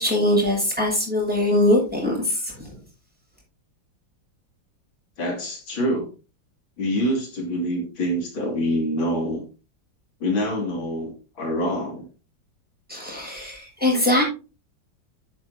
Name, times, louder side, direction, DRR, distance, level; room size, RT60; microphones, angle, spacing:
voice 1, 0.0-2.8 12.9-14.2, left 1 dB, 5° right, -3 dB, 6.8 m, -22 dB
voice 2, 5.2-6.1 6.8-9.4 10.2-12.1, equal, 85° left, 1 dB, 3.6 m, -26 dB
11.0 x 9.4 x 2.9 m, 0.32 s
omnidirectional pair, 2.1 m